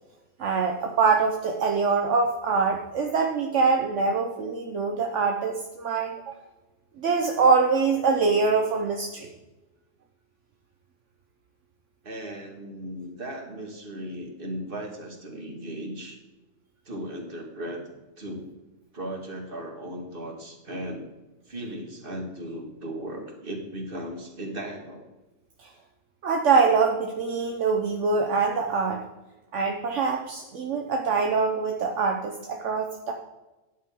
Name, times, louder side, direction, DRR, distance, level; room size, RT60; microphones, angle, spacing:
voice 1, 0.4-6.4 7.0-9.3 25.6-25.7 26.2-29.0 29.5-33.1, right 4 dB, 70° right, 2 dB, 1.3 m, -24 dB
voice 2, 12.0-16.2 16.9-17.8 18.2-18.4 18.9-21.0 21.5-25.0, right 1 dB, 45° right, 2 dB, 2.3 m, -36 dB
13.0 x 10.0 x 3.7 m, 1.1 s
omnidirectional pair, 1.3 m